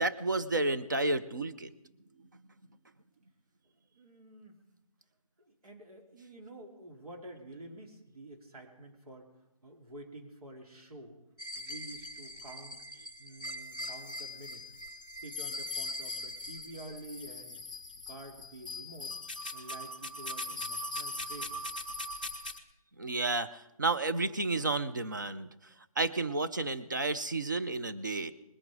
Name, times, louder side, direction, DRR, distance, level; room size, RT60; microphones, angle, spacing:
voice 1, 0.0-1.7 23.0-23.5 23.8-25.5 26.0-28.3, right 2 dB, 35° right, 11 dB, 0.5 m, -31 dB
voice 2, 3.9-4.6 5.5-9.3 9.6-11.2 11.6-12.8 13.2-14.6 15.1-17.6 18.1-19.1 19.5-21.6, right 1 dB, 85° right, 2 dB, 2.8 m, -49 dB
sound 1, 11.4-22.6, left 1 dB, 15° left, 0.4 m, -41 dB
20.5 x 8.9 x 4.8 m, 0.89 s
hypercardioid pair, 175°, 19 cm